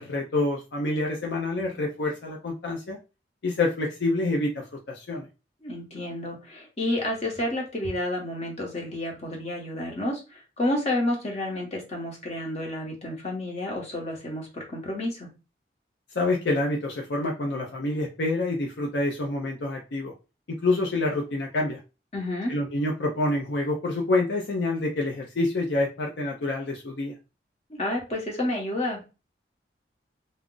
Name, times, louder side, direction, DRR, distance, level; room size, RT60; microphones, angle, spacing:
voice 1, 0.0-3.0 3.4-5.3 16.1-20.1 20.5-21.8 22.5-27.1, left 2 dB, 70° left, 0 dB, 0.5 m, -27 dB
voice 2, 5.6-15.3 22.1-22.5 27.7-29.1, left 1 dB, 35° left, 0 dB, 0.9 m, -30 dB
2.3 x 2.0 x 3.7 m, 0.30 s
head